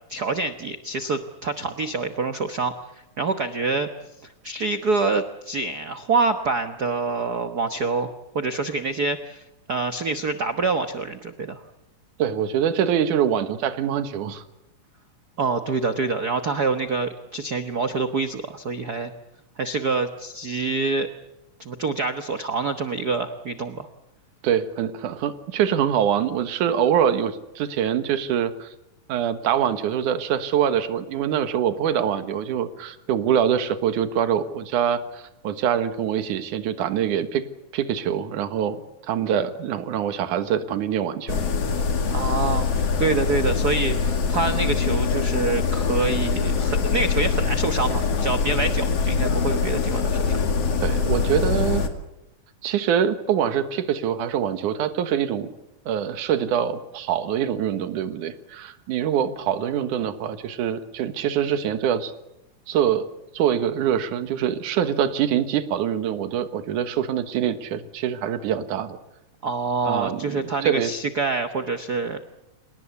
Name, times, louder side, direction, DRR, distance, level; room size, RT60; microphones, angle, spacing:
voice 1, 0.1-3.9 4.2-9.4 9.7-11.6 15.4-19.1 19.6-21.1 21.6-23.9 42.1-50.4 69.4-72.2, right 3 dB, 90° right, 8 dB, 0.8 m, -26 dB
voice 2, 12.2-14.4 24.4-28.7 29.1-37.4 37.7-41.4 50.8-51.8 52.6-55.5 55.9-62.1 62.7-63.0 63.3-69.0 69.8-70.9, right 9 dB, 75° right, 10 dB, 2.9 m, -24 dB
sound 1, 41.3-51.9, left 5 dB, 50° left, 3.1 m, -23 dB
28.5 x 18.5 x 8.3 m, 0.91 s
omnidirectional pair, 3.7 m